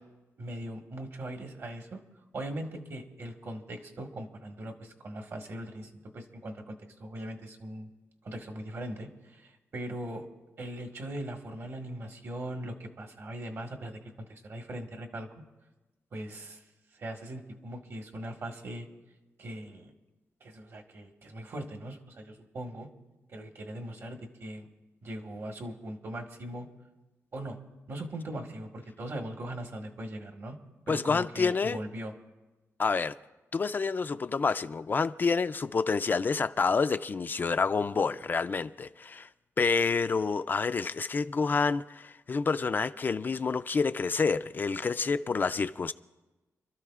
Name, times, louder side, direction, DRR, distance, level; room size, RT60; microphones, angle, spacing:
voice 1, 0.4-2.0 2.3-7.9 8.2-10.3 10.6-15.3 16.1-16.6 16.9-18.9 19.4-19.9 20.4-22.9 23.3-24.7 25.0-26.7 27.3-27.6 27.9-30.6 30.9-32.1, right 1 dB, 55° right, 1.6 m, -40 dB
voice 2, 30.9-31.8 32.8-33.1 33.5-39.3 39.6-45.9, left 4 dB, 35° left, 0.3 m, -28 dB
28.5 x 13.0 x 2.4 m
wide cardioid pair, 130°, 6 cm